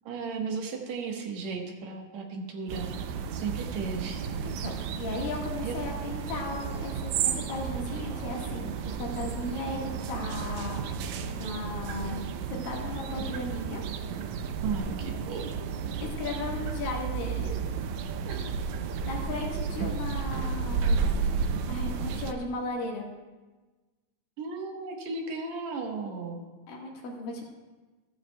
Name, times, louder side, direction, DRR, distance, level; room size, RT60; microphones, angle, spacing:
voice 1, 0.1-2.9 3.3-4.2 5.6-5.8 14.6-15.5 18.3-18.5 24.4-26.4, right 4 dB, 60° right, 1 dB, 2.3 m, -35 dB
sound 1, 2.7-22.3, right 6 dB, 80° right, 1.6 m, -32 dB
voice 2, 4.4-10.8 11.2-13.8 16.0-17.5 19.0-21.3 21.7-23.1 26.7-27.5, left 3 dB, 85° left, -1 dB, 3.4 m, -36 dB
14.5 x 14.0 x 2.3 m, 1.2 s
omnidirectional pair, 4.0 m